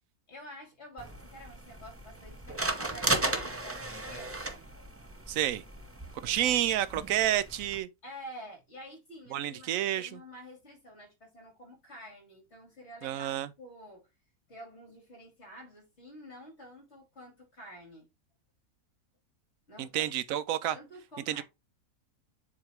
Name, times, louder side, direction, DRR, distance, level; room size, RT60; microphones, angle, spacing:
voice 1, 0.3-4.6 6.2-6.7 8.0-14.1 14.5-18.1 19.7-20.1 20.7-21.4, equal, 45° left, 2.7 m, -49 dB
sound 1, 1.0-7.8, right 2 dB, 15° right, 0.4 m, -36 dB
voice 2, 5.3-5.6 6.2-7.9 9.3-10.2 13.0-13.5 19.8-20.8 21.3-21.4, right 12 dB, 70° right, 0.9 m, -29 dB
7.4 x 2.9 x 4.5 m
omnidirectional pair, 1.6 m